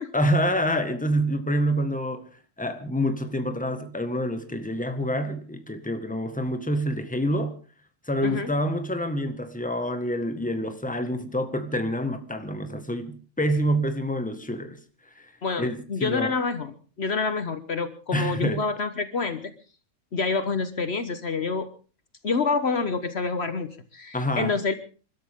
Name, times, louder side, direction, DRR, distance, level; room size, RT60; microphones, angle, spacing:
voice 1, 0.1-2.3 2.6-7.6 8.0-14.8 15.2-15.3 15.6-16.3 18.1-18.6 24.1-24.6, equal, 5° left, 1.6 m, -27 dB
voice 2, 15.4-19.5 20.1-21.7 22.2-24.7, left 4 dB, 55° left, 1.4 m, -27 dB
28.0 x 13.0 x 3.7 m
omnidirectional pair, 1.3 m